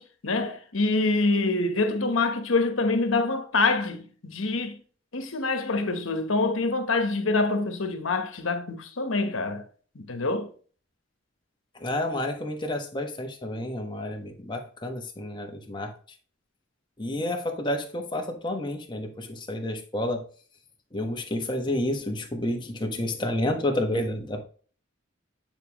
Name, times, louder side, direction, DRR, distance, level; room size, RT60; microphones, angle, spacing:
voice 1, 0.0-4.8 5.1-9.6 9.9-10.5, left 3 dB, 80° left, 1.1 m, -26 dB
voice 2, 11.8-15.9 17.0-20.2 20.9-24.4, left 1 dB, 20° left, 1.1 m, -30 dB
9.1 x 4.8 x 3.0 m
head